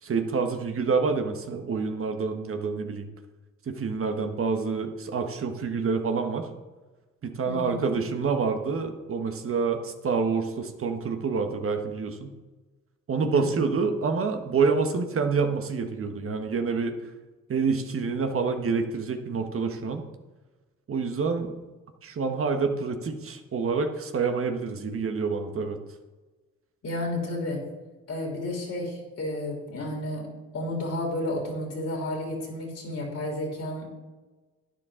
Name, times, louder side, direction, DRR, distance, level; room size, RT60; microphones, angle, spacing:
voice 1, 0.0-3.1 3.7-6.5 7.2-12.3 13.1-17.0 17.5-20.0 20.9-21.6 22.0-25.8, right 5 dB, 45° right, 5 dB, 1.3 m, -27 dB
voice 2, 7.4-7.8 13.3-13.6 26.8-27.6 28.1-33.9, left 1 dB, 55° left, 0 dB, 3.4 m, -32 dB
11.5 x 9.9 x 3.8 m, 1.2 s
cardioid pair, 90°, 30 cm